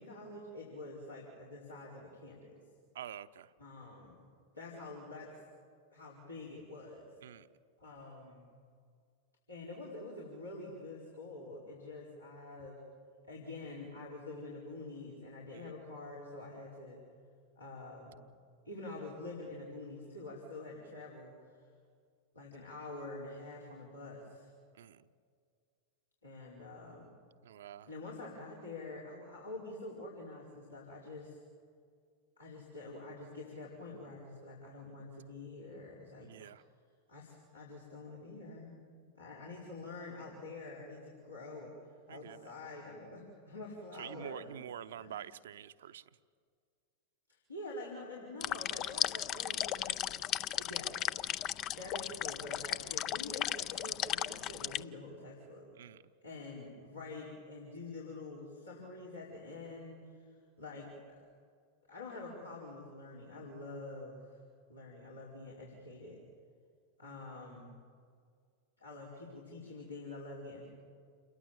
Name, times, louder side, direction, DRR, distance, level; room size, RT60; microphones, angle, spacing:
voice 1, 0.0-2.6 3.6-4.2 4.5-5.3 5.9-7.1 7.8-8.5 9.5-12.8 13.3-17.0 17.5-18.2 18.6-21.7 22.3-24.5 26.2-27.1 27.9-31.4 32.4-36.5 37.1-38.8 39.0-44.6 44.9-45.2 47.3-50.0 50.5-51.0 51.8-55.7 56.2-61.2 61.9-64.4 64.7-66.2 67.0-67.7 68.8-70.7, left 2 dB, 80° left, -6 dB, 5.1 m, -47 dB
voice 2, 2.9-3.5 7.2-7.5 15.5-15.7 24.7-25.1 27.4-27.9 36.2-36.6 42.1-42.5 44.0-46.0 55.8-56.0, right 10 dB, 60° right, 12 dB, 0.8 m, -47 dB
sound 1, 48.4-54.8, left 12 dB, 35° left, 0.5 m, -36 dB
29.0 x 22.0 x 7.5 m, 2.1 s
figure-of-eight pair, 90°, 0 cm